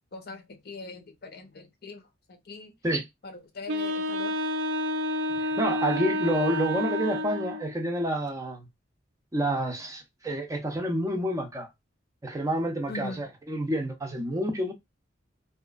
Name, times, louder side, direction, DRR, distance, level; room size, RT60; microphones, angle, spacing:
voice 1, 0.1-2.7 3.2-4.3 12.9-13.2, left 3 dB, 55° left, 0.6 m, -41 dB
Wind instrument woodwind instrument, 3.7-7.8, left 1 dB, 85° right, 0.5 m, -29 dB
voice 2, 5.4-8.7 9.3-11.7 12.2-14.7, right 1 dB, 15° right, 0.5 m, -29 dB
2.8 x 2.4 x 2.3 m
head